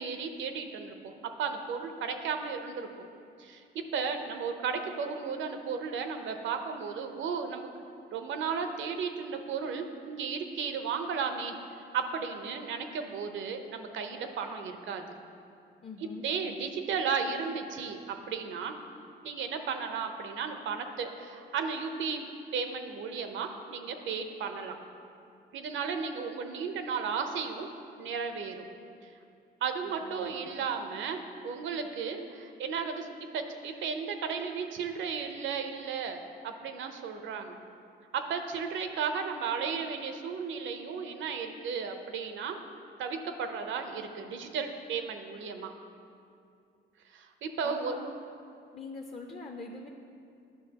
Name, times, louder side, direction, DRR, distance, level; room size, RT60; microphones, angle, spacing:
voice 1, 0.0-2.9 3.4-7.7 8.1-11.6 11.9-15.1 16.2-18.8 19.2-22.3 22.5-24.8 25.5-27.7 28.0-28.7 29.6-33.1 33.3-37.6 38.1-42.6 43.0-45.7 47.1-48.0, right 6 dB, 75° right, 6 dB, 0.7 m, -34 dB
voice 2, 15.8-16.3 29.8-30.5 47.6-48.1 48.7-49.9, left 3 dB, 30° left, 2 dB, 0.5 m, -43 dB
11.0 x 5.7 x 2.9 m, 2.5 s
cardioid pair, 90°, 20 cm